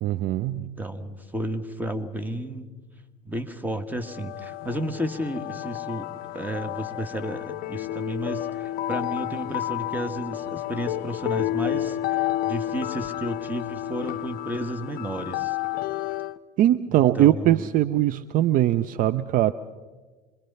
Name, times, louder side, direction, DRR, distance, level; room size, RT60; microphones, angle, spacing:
voice 1, 0.0-0.8 16.6-19.5, right 13 dB, 40° right, 13 dB, 0.6 m, -21 dB
voice 2, 0.5-2.7 3.2-15.6 17.1-17.7, right 1 dB, 10° right, 8 dB, 1.7 m, -32 dB
sound 1, 4.0-16.4, left 14 dB, 45° left, 0.7 m, -31 dB
26.0 x 21.5 x 5.6 m, 1.3 s
figure-of-eight pair, 70°, 21 cm